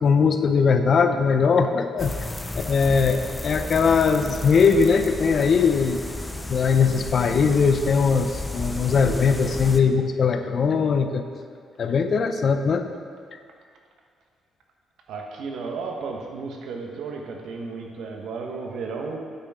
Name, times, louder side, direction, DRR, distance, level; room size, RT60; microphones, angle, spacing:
voice 1, 0.0-2.1 2.5-6.0 6.5-11.2 11.8-12.9, left 5 dB, 55° left, 7 dB, 0.6 m, -20 dB
sound 1, 2.0-9.8, left 2 dB, 15° left, 0.6 m, -33 dB
voice 2, 15.1-19.2, right 4 dB, 80° right, 2 dB, 1.2 m, -33 dB
9.2 x 8.8 x 3.7 m, 2.1 s
cardioid pair, 90°, 0 cm